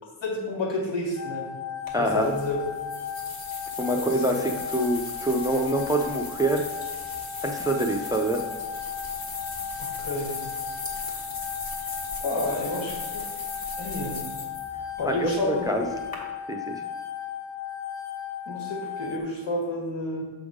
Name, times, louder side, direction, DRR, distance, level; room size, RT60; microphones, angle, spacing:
voice 1, 0.2-1.5 2.0-2.6 4.0-4.1 4.3-4.4 9.8-10.4 12.2-13.3 13.8-14.2 15.0-15.7 18.5-20.2, left 1 dB, 75° left, -2 dB, 1.7 m, -30 dB
sound 1, 1.1-19.2, left 9 dB, 35° left, 0.8 m, -35 dB
sound 2, 1.9-16.2, left 2 dB, 50° left, 1.4 m, -39 dB
voice 2, 1.9-2.3 3.8-6.6 7.4-8.4 15.0-15.8 16.5-16.8, right 1 dB, 10° right, 3 dB, 0.4 m, -25 dB
6.9 x 3.5 x 5.0 m, 1.3 s
wide cardioid pair, 150°, 45 cm